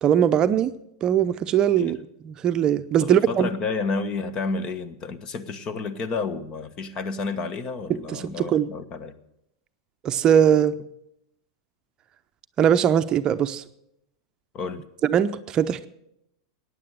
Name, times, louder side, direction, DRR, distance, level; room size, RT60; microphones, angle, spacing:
voice 1, 0.0-0.7 1.0-2.0 2.3-3.5 7.9-8.7 10.0-10.7 12.6-13.6 15.1-15.9, right 9 dB, 35° right, 9 dB, 0.7 m, -21 dB
voice 2, 3.0-9.2 14.5-14.8, left 4 dB, 35° left, 13 dB, 1.3 m, -30 dB
15.0 x 9.7 x 7.6 m, 0.82 s
hypercardioid pair, 115°, 2 cm